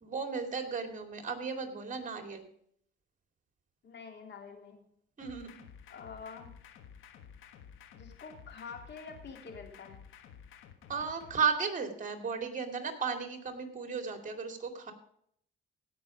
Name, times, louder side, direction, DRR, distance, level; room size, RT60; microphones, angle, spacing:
voice 1, 0.0-2.5 5.2-5.6 10.9-14.9, right 5 dB, 40° right, 6 dB, 2.5 m, -35 dB
voice 2, 3.8-4.8 5.9-6.5 7.9-10.0, left 5 dB, 60° left, 3 dB, 3.1 m, -47 dB
sound 1, 5.2-11.4, left 8 dB, 85° left, 1.4 m, -53 dB
17.0 x 6.1 x 5.0 m, 0.67 s
cardioid pair, 90°, 20 cm